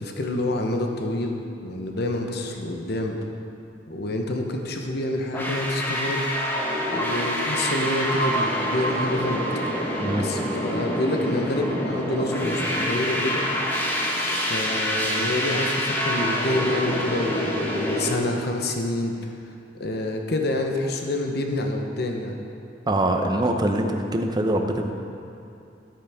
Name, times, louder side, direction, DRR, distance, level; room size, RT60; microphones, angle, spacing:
voice 1, 0.0-3.2 3.9-6.3 6.9-9.4 10.2-13.4 14.3-19.3 19.7-22.4, left 1 dB, 60° left, 3 dB, 0.9 m, -27 dB
sound 1, 5.3-18.2, equal, 10° left, 1.0 m, -26 dB
voice 2, 22.9-24.9, right 1 dB, 20° right, 4 dB, 0.7 m, -23 dB
12.5 x 8.4 x 3.6 m, 2.6 s
head